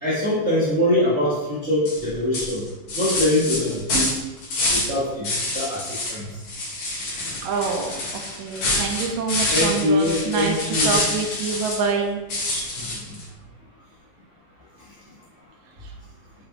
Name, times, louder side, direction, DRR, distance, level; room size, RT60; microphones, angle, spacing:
voice 1, 0.0-2.6 2.9-4.1 4.7-6.3 9.5-11.0 12.7-13.2, left 1 dB, 50° right, -10 dB, 0.8 m, -23 dB
sound 1, 1.8-2.0 2.3-4.9 5.2-6.2 6.4-11.9 12.3-13.2, left 2 dB, 55° left, 2.3 m, -26 dB
voice 2, 7.4-12.2 12.5-12.7, right 5 dB, 80° right, 2 dB, 2.4 m, -26 dB
6.7 x 5.3 x 2.9 m, 1.0 s
omnidirectional pair, 3.8 m